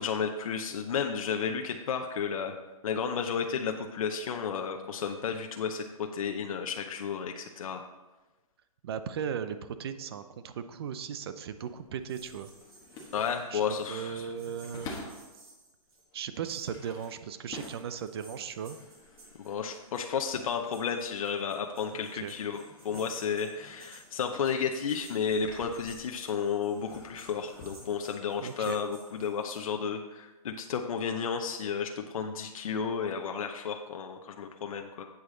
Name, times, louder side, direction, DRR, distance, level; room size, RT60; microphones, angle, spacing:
voice 1, 0.0-2.5 2.8-7.8 13.1-14.3 19.4-35.0, left 6 dB, 65° left, 4 dB, 0.8 m, -32 dB
voice 2, 8.8-12.5 13.5-14.9 16.1-18.8 21.9-22.3 28.4-28.8, right 7 dB, 45° right, 11 dB, 0.6 m, -37 dB
sound 1, 11.4-15.4 16.0-21.2 21.5-26.3 26.7-28.0, left 3 dB, 20° left, 1.2 m, -50 dB
sound 2, 12.1-13.9 14.3-16.2 16.4-17.1 17.5-29.6, right 3 dB, 70° right, 3.0 m, -56 dB
8.1 x 8.1 x 3.9 m, 1.2 s
hypercardioid pair, 165°, 19 cm